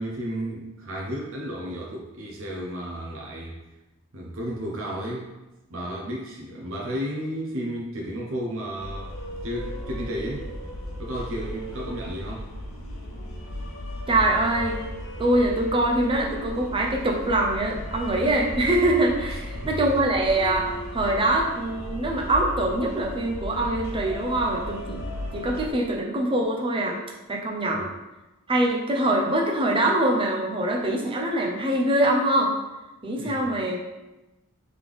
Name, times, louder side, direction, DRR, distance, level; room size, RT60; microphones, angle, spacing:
voice 1, 0.0-3.6 4.1-5.3 5.7-9.1 9.4-10.5 11.0-12.5 19.5-19.7 27.7-27.9 33.1-33.5, equal, 65° right, -3 dB, 0.7 m, -33 dB
sound 1, 8.7-25.7, equal, 70° left, 1.0 m, -35 dB
voice 2, 14.1-14.8 15.2-25.0 25.3-27.0 27.3-27.9 28.5-32.5 33.0-33.8, right 1 dB, 25° right, 0 dB, 0.6 m, -24 dB
3.8 x 3.3 x 3.4 m, 1.0 s
head